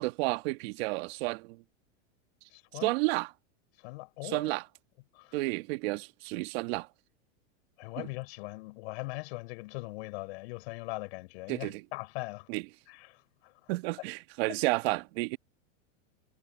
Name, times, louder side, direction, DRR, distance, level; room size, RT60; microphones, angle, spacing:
voice 1, 0.0-1.6 2.8-3.3 4.2-4.6 5.3-6.9 8.0-8.1 11.5-11.8 12.5-12.6 13.7-15.4, right 23 dB, 50° right, 1.7 m, -31 dB
voice 2, 2.5-2.9 3.8-4.5 5.2-5.4 7.8-12.5 12.9-13.2 13.4-13.5, left 24 dB, 55° left, 6.1 m, -40 dB
supercardioid pair, 140°, 38 cm